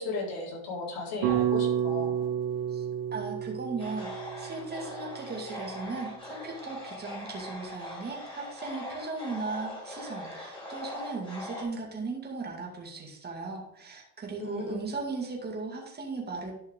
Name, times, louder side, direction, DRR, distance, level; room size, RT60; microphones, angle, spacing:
voice 1, 0.0-2.1 14.4-14.8, left 3 dB, 50° left, -3 dB, 3.9 m, -35 dB
sound 1, 1.2-5.5, right 9 dB, 60° right, 1.8 m, -30 dB
voice 2, 3.1-4.1 4.4-16.5, right 3 dB, 20° right, 0 dB, 2.4 m, -37 dB
sound 2, 3.8-11.6, left 1 dB, 10° left, 3.9 m, -41 dB
11.5 x 5.5 x 3.9 m, 0.73 s
supercardioid pair, 115°, 44 cm